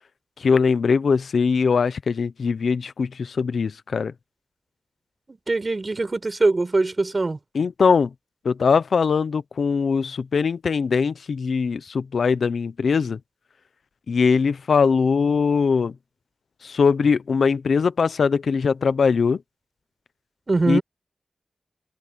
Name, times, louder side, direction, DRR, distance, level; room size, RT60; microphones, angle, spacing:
voice 1, 0.4-4.1 7.5-8.1 8.4-13.2 14.1-15.9 16.6-19.4 20.7-20.8, left 5 dB, 90° left, 0.8 m, -21 dB
voice 2, 5.3-7.4 20.5-20.8, right 3 dB, 40° right, 4.6 m, -22 dB
wide cardioid pair, 90°, 0 cm